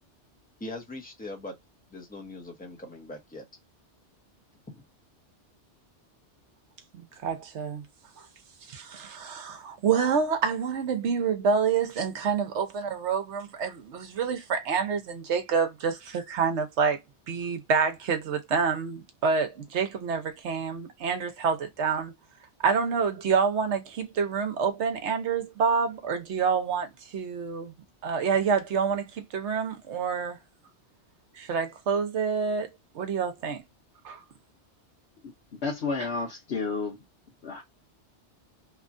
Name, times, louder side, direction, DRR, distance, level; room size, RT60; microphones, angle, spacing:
voice 1, 0.6-1.6 1.9-3.4 4.7-4.8, left 2 dB, 10° left, 0.8 m, -41 dB
voice 2, 6.9-7.8 8.7-17.0 17.3-22.1 22.6-27.7 28.0-30.4 31.4-32.7 32.9-33.6 34.0-34.2, right 6 dB, 75° right, 1.1 m, -27 dB
voice 3, 35.6-37.0 37.4-37.6, left 4 dB, 70° left, 1.1 m, -30 dB
3.0 x 2.4 x 2.5 m
omnidirectional pair, 1.2 m